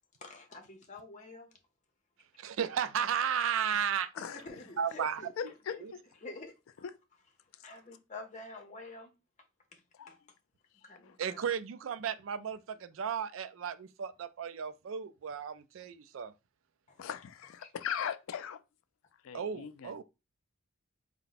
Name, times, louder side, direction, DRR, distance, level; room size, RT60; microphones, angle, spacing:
voice 1, 0.2-1.5 3.7-3.8 4.2-7.3 7.6-9.1 9.7-9.8 10.1-10.2 10.8-11.6 15.8-15.9 16.9-17.0 17.4-17.7, left 2 dB, 35° left, 0.8 m, -49 dB
voice 2, 2.4-4.1 4.8-5.2 5.8-5.9 11.2-16.3 19.3-20.0, right 8 dB, 70° right, 0.4 m, -34 dB
voice 3, 5.4-5.8 6.8-6.9 10.0-10.1 11.0-11.1 17.0-18.6 19.2-20.0, left 8 dB, 80° left, 0.4 m, -39 dB
4.2 x 2.1 x 4.0 m
head